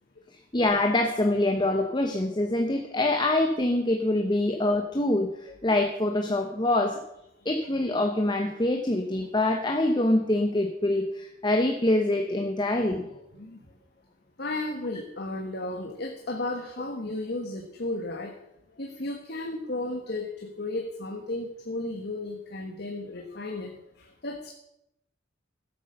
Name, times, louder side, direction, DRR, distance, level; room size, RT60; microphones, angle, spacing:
voice 1, 0.5-7.0 7.4-13.0, left 1 dB, 20° left, 4 dB, 1.0 m, -25 dB
voice 2, 12.9-13.6 14.4-18.3 18.8-24.5, left 2 dB, 55° left, 2 dB, 1.4 m, -34 dB
14.0 x 8.5 x 6.7 m, 0.83 s
head